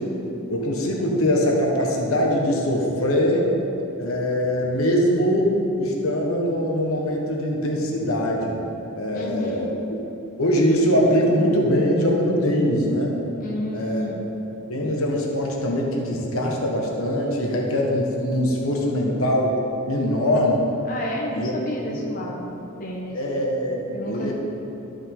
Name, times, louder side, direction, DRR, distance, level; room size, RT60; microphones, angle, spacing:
voice 1, 0.5-3.5 4.0-8.6 9.0-9.7 10.4-13.1 13.7-14.1 14.7-19.6 19.9-20.6 21.3-21.5 21.9-22.0 23.1-24.3, equal, 75° left, -1 dB, 1.2 m, -22 dB
voice 2, 9.1-9.7 13.4-14.2 20.9-23.2 23.9-24.3, left 1 dB, 40° left, -3 dB, 1.0 m, -31 dB
12.0 x 5.3 x 3.8 m, 3.0 s
head